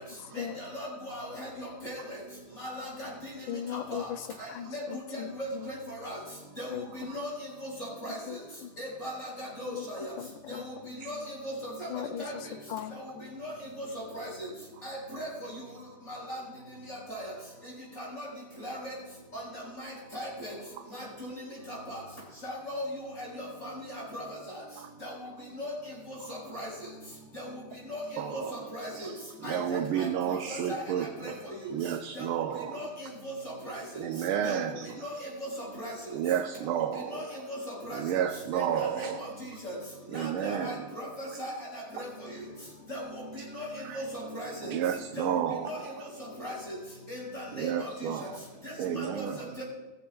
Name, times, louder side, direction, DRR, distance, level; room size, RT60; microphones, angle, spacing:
voice 1, 0.7-2.0 2.6-3.1 3.9-4.1 4.7-4.8 5.4-5.5 6.0-6.2 6.6-6.7 7.1-7.3 7.6-8.2 8.8-10.0 11.1-11.2 11.4-11.9 12.2-12.3 13.4-13.5 13.9-14.5 14.8-15.3 16.1-16.4 16.9-17.3 18.0-18.3 18.6-18.9 19.3-19.4 19.8-20.5 20.9-21.3 21.7-22.0 22.4-22.8 23.2-23.3 23.6-23.7 23.9-24.2 25.0-25.1 25.6-25.7 26.1-26.7 27.4-27.5 27.9-28.0 28.3-28.9 29.4-30.8 31.2-31.3 31.6-31.7 32.7-32.9 33.2-33.8 34.4-34.6 35.0-35.1 35.8-35.9 37.1-37.2 37.7-38.0 38.5-39.3 39.6-39.8 40.1-42.1 42.9-43.0 43.5-43.7 43.9-44.7 45.2-45.3 45.7-45.8 46.4-46.6 47.1-47.9 48.6-49.2 49.6-49.7, equal, 35° left, -4 dB, 5.0 m, -38 dB
voice 2, 3.5-4.0 4.5-5.3 6.7-7.1 8.3-8.4 9.7-9.8 10.2-10.6 11.9-12.2 12.7-12.9, left 10 dB, 75° left, 11 dB, 1.3 m, -37 dB
voice 3, 4.4-4.7 5.6-5.7 7.1-7.2 11.0-11.2 14.8-14.9 20.8-20.9 24.8-24.9 26.3-26.4 28.2-31.4 31.7-32.9 34.0-35.1 36.1-37.5 37.9-39.3 40.1-41.0 41.3-41.4 42.0-42.1 43.6-44.0 44.6-46.1 47.5-48.5 48.8-49.5, right 9 dB, 80° right, 6 dB, 1.5 m, -32 dB
18.0 x 14.0 x 2.3 m, 1.1 s
omnidirectional pair, 2.3 m